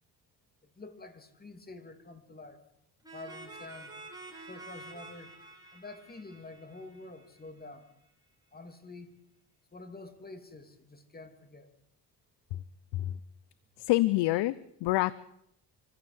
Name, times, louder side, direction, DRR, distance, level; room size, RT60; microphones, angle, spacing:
voice 1, 0.6-2.6 3.1-3.9 4.5-5.4 5.7-7.9 8.5-9.1 9.7-11.7, left 2 dB, 25° left, 8 dB, 3.0 m, -48 dB
sound 1, 3.0-7.6, right 2 dB, 10° right, 5.1 m, -49 dB
voice 2, 13.8-15.2, left 17 dB, 85° left, 18 dB, 0.8 m, -27 dB
24.5 x 15.0 x 8.1 m, 0.75 s
cardioid pair, 100°, 40 cm